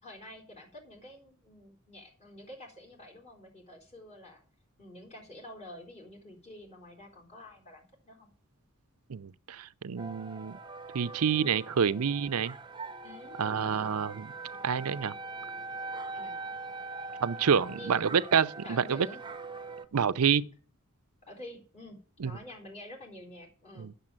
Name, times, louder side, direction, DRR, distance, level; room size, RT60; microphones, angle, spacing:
voice 1, 0.0-4.4 4.8-8.3 13.0-13.9 16.1-16.4 17.5-18.1 18.6-19.2 21.2-23.9, left 1 dB, 30° left, 4.0 m, -48 dB
voice 2, 9.1-10.6 10.9-12.6 13.4-14.3 14.6-15.1 17.2-19.1 19.9-20.5 22.2-22.3 23.8-23.9, right 7 dB, 80° right, 0.5 m, -28 dB
sound 1, 10.0-19.8, right 3 dB, 20° right, 0.8 m, -42 dB
9.6 x 6.9 x 8.9 m
head